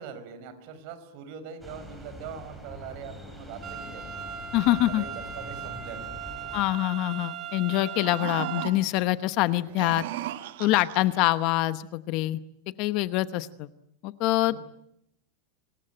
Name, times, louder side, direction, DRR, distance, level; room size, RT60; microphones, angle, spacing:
voice 1, 0.0-4.2 4.6-6.1 14.5-14.6, right 7 dB, 45° right, 10 dB, 5.1 m, -42 dB
sound 1, 1.6-6.7, left 1 dB, ahead, 4.8 m, -44 dB
sound 2, 3.6-8.7, right 8 dB, 25° right, 2.7 m, -38 dB
voice 2, 4.5-5.0 6.5-10.0 10.6-12.4 12.8-13.7 14.0-14.6, left 16 dB, 40° left, 14 dB, 0.9 m, -25 dB
sound 3, 7.7-9.1 9.6-11.2, right 13 dB, 65° right, 1.5 m, -37 dB
26.0 x 21.5 x 9.0 m, 0.76 s
supercardioid pair, 170°, 0 cm